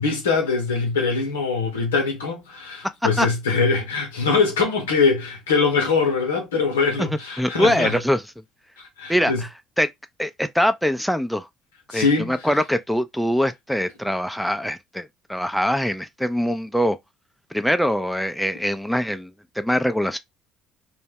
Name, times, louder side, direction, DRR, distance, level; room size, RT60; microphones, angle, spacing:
voice 1, 0.0-7.9 8.8-9.4 11.9-12.3, left 4 dB, 85° left, 0.7 m, -22 dB
voice 2, 7.4-8.2 9.1-9.3 9.8-9.9 10.2-11.5 11.9-17.0 17.5-20.2, equal, ahead, 0.3 m, -23 dB
2.1 x 2.1 x 3.2 m
hypercardioid pair, 60°, 0 cm